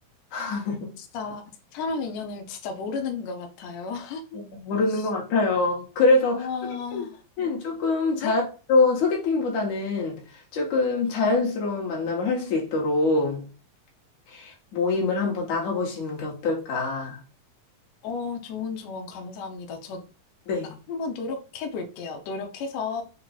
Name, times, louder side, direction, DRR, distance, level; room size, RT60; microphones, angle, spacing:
voice 1, 0.3-0.9 4.4-6.5 6.9-7.0 7.4-8.4 8.7-10.2 10.5-13.4 14.3-17.2 20.5-20.7, left 3 dB, 65° left, 2.4 m, -24 dB
voice 2, 1.0-4.4 4.9-5.1 6.3-7.2 8.2-8.4 18.0-20.0 20.9-23.0, left 4 dB, 85° left, 1.5 m, -33 dB
5.8 x 2.3 x 3.9 m
omnidirectional pair, 4.0 m